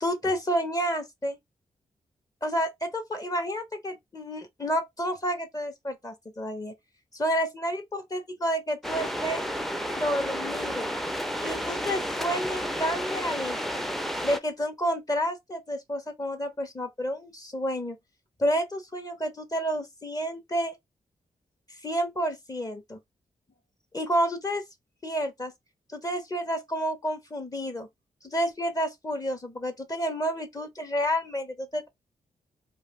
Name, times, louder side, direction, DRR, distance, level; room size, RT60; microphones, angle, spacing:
voice 1, 0.0-1.4 2.4-6.7 7.1-9.5 9.9-10.9 11.4-13.8 14.2-18.0 18.4-20.8 21.8-23.0 23.9-24.6 25.0-25.5 25.9-27.9 28.2-31.9, equal, 25° left, 0.8 m, -30 dB
sound 1, 8.8-14.4, equal, ahead, 0.5 m, -31 dB
2.4 x 2.3 x 3.4 m
cardioid pair, 55°, 14 cm